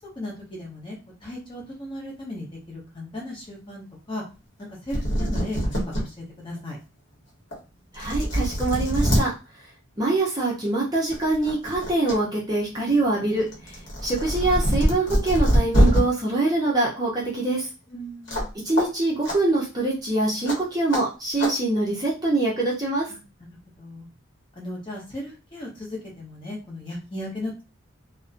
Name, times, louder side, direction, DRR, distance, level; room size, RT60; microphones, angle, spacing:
voice 1, 0.1-4.2 4.6-6.8 17.9-18.5 23.1-23.2 23.8-24.1 24.6-27.6, left 1 dB, 25° left, -3 dB, 0.8 m, -36 dB
sound 1, 4.6-4.7 4.9-6.0 6.6-6.7 7.5-7.6 7.9-9.2 10.5-10.7 11.1-12.2 12.5-16.0 18.3-18.5 18.8-18.9 19.2-19.4 20.4-20.6 20.9-21.0 21.4-21.5, equal, 60° left, 1.0 m, -23 dB
voice 2, 7.9-9.3 10.0-17.7 18.6-23.1, right 2 dB, 20° right, -5 dB, 0.6 m, -24 dB
2.5 x 2.1 x 2.5 m, 0.31 s
head